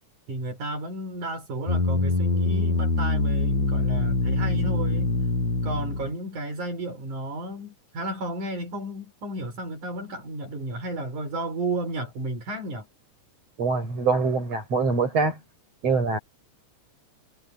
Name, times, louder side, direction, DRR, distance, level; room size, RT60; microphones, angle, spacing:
voice 1, 0.3-5.1 5.6-12.9, right 2 dB, 75° right, 6.6 m, -33 dB
sound 1, 1.7-6.1, left 3 dB, 70° left, 9.1 m, -24 dB
voice 2, 13.6-15.4 15.8-16.2, right 4 dB, 55° right, 8.1 m, -24 dB
omnidirectional pair, 3.5 m